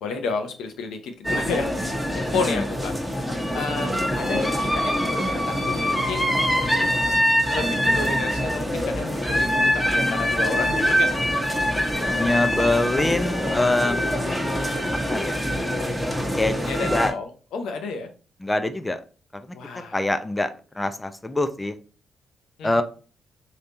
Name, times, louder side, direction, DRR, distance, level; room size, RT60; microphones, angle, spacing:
voice 1, 0.0-2.9 3.5-6.5 7.5-11.1 16.5-18.1 19.5-20.0 22.6-22.8, left 4 dB, 70° left, 6 dB, 0.6 m, -31 dB
sound 1, 1.2-17.1, equal, 5° left, 1.3 m, -24 dB
voice 2, 12.1-14.3 15.1-15.4 16.4-17.1 18.4-19.0 19.9-20.5 20.8-21.7 22.6-22.8, left 2 dB, 20° left, 9 dB, 0.5 m, -24 dB
3.3 x 2.8 x 4.0 m, 0.37 s
hypercardioid pair, 45°, 0 cm